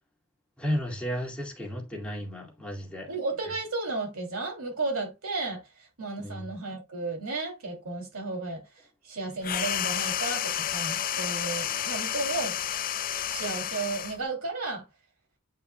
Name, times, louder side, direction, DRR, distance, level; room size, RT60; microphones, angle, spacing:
voice 1, 0.6-3.1 6.2-6.5, equal, 5° left, 2.2 m, -33 dB
voice 2, 3.1-5.6 6.0-8.6 9.0-12.6 13.3-14.8, right 3 dB, 70° right, 2.8 m, -33 dB
sound 1, 9.4-14.2, left 10 dB, 40° left, 0.4 m, -31 dB
9.2 x 5.6 x 2.2 m
head